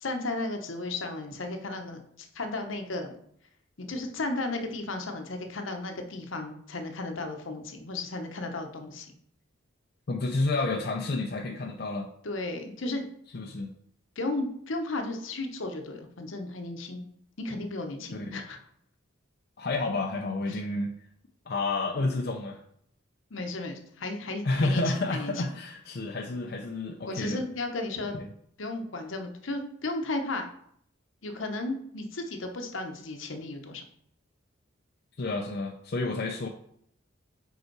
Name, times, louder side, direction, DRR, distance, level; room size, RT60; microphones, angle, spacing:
voice 1, 0.0-3.1 3.8-9.1 12.2-13.0 14.2-17.0 17.4-18.6 20.5-20.6 23.3-25.3 27.1-28.1 28.6-30.5 31.2-33.8, left 2 dB, 75° left, 5 dB, 0.9 m, -34 dB
voice 2, 10.1-12.1 13.3-13.7 18.1-18.4 19.6-21.0 21.5-22.6 24.4-27.4 28.1-28.3 35.2-36.5, left 2 dB, 50° left, 1 dB, 0.5 m, -30 dB
5.3 x 4.8 x 4.6 m, 0.67 s
head